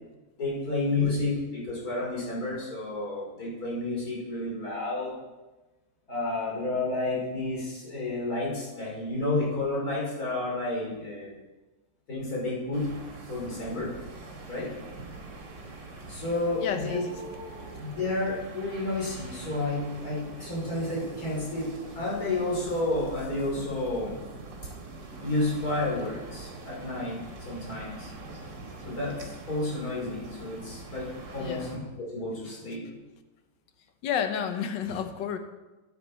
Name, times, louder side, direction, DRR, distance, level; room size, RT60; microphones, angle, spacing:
voice 1, 0.4-5.1 6.1-11.3 12.1-12.9 13.3-13.9 14.5-14.7 16.1-17.0 17.8-24.2 25.2-27.2 27.5-28.1 28.8-32.8, left 2 dB, 55° left, -5 dB, 4.0 m, -31 dB
sound 1, 12.7-31.8, right 3 dB, 75° right, 2.4 m, -43 dB
voice 2, 16.6-17.2 31.4-31.8 34.0-35.4, left 8 dB, 90° left, 8 dB, 1.5 m, -31 dB
10.0 x 9.1 x 4.3 m, 1.1 s
omnidirectional pair, 1.9 m